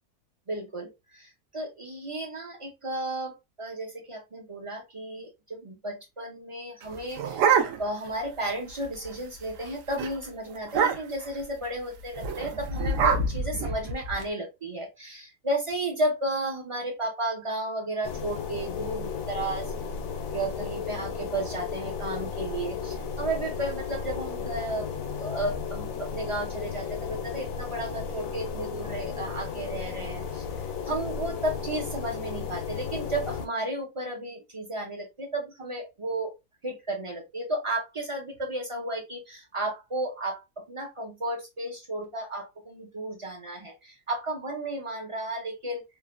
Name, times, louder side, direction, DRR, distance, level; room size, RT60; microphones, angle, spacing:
voice 1, 0.5-7.5 7.8-19.7 20.3-30.4 30.9-36.3 36.6-45.8, right 1 dB, 55° right, 0 dB, 0.3 m, -33 dB
sound 1, 6.8-8.1 8.5-8.6 8.8-9.1 9.5-9.7 10.0-10.1 10.7-11.3 12.2-14.2, right 5 dB, 75° right, 0.9 m, -26 dB
sound 2, 18.0-33.5, left 6 dB, 85° left, 1.0 m, -34 dB
3.1 x 2.1 x 2.4 m, 0.23 s
omnidirectional pair, 1.4 m